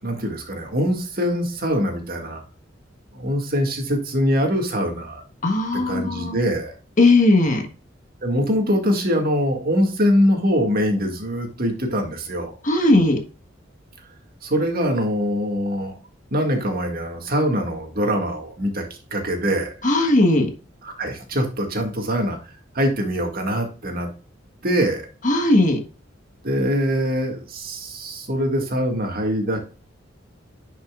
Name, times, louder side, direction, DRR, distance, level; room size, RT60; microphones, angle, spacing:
voice 1, 0.0-2.4 3.1-5.2 5.7-6.7 8.2-12.5 14.4-16.0 16.3-18.8 19.1-19.7 20.8-22.4 22.7-24.1 24.6-25.1 26.4-29.6, equal, 50° right, 2 dB, 2.0 m, -23 dB
voice 2, 5.4-6.4 7.0-7.7 12.6-13.2 19.8-20.5 25.2-25.8, left 2 dB, 40° left, 4 dB, 1.5 m, -17 dB
10.0 x 5.4 x 2.4 m, 0.34 s
head